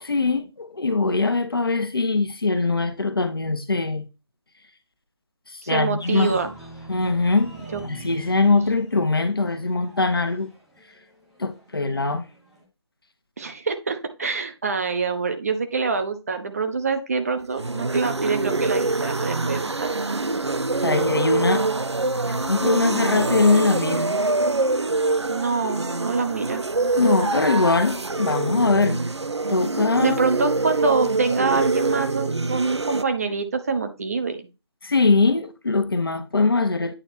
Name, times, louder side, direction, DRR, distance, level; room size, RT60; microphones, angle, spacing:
voice 1, 0.0-4.1 5.5-6.3 6.9-7.5 7.8-10.5 11.4-12.3 20.8-21.6 22.3-24.1 27.0-29.1 29.5-30.2 34.8-36.9, left 3 dB, 60° left, 1.1 m, -22 dB
voice 2, 5.6-6.5 7.7-7.8 13.4-20.2 25.3-26.6 30.0-34.5, right 4 dB, 35° right, 0.9 m, -25 dB
sound 1, 6.0-12.6, right 2 dB, ahead, 0.5 m, -45 dB
sound 2, 17.4-33.0, right 3 dB, 85° right, 0.5 m, -25 dB
9.0 x 3.2 x 4.3 m
figure-of-eight pair, 155°, 14 cm